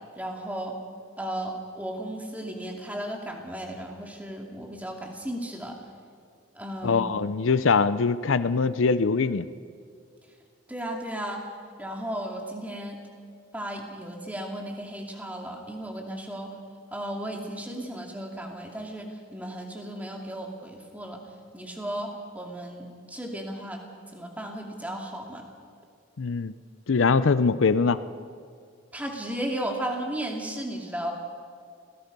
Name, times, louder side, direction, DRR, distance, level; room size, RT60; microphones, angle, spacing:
voice 1, 0.2-0.8 1.2-5.8 6.5-7.1 10.7-11.5 11.8-13.0 13.5-16.5 16.9-21.2 21.5-23.8 24.1-25.4 28.9-31.1, right 1 dB, 10° right, 1 dB, 2.4 m, -35 dB
voice 2, 6.8-9.5 26.2-26.5 26.9-28.0, left 4 dB, 85° left, 14 dB, 0.6 m, -22 dB
27.5 x 18.0 x 5.4 m, 2.2 s
head